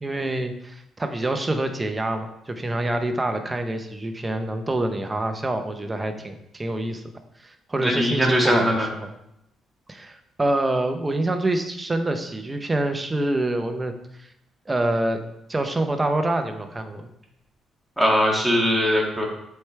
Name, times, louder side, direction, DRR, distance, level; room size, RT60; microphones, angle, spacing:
voice 1, 0.0-7.0 7.4-9.1 9.9-13.9 14.2-14.3 14.7-15.2 15.5-17.1, right 1 dB, 20° right, 6 dB, 0.8 m, -26 dB
voice 2, 7.8-8.9 18.0-19.3, equal, 5° right, -3 dB, 2.0 m, -20 dB
7.9 x 4.7 x 3.3 m, 0.81 s
cardioid pair, 90°, 0 cm